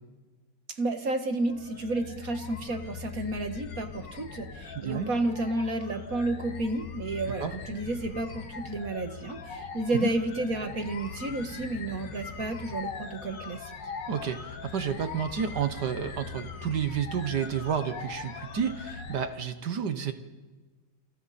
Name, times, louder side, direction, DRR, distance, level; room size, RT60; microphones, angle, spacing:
voice 1, 0.8-13.7, right 2 dB, 50° right, 6 dB, 2.1 m, -31 dB
sound 1, 1.5-19.2, left 6 dB, 85° left, 2.0 m, -41 dB
voice 2, 14.1-20.1, right 7 dB, 70° right, 9 dB, 1.7 m, -30 dB
29.0 x 28.0 x 4.3 m, 1.3 s
omnidirectional pair, 1.9 m